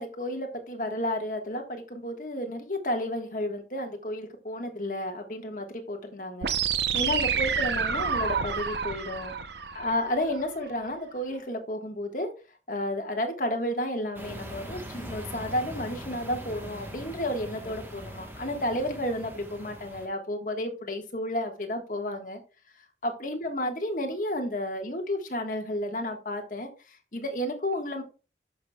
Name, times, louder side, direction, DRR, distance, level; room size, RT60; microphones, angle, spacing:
voice 1, 0.0-6.5 6.9-9.3 9.7-12.3 12.7-22.4 23.0-28.0, left 1 dB, 45° left, 4 dB, 1.5 m, -32 dB
sound 1, 6.4-10.4, right 6 dB, 70° right, 0.7 m, -29 dB
sound 2, 14.1-20.1, equal, 10° right, 1.2 m, -41 dB
12.0 x 5.8 x 2.3 m, 0.33 s
head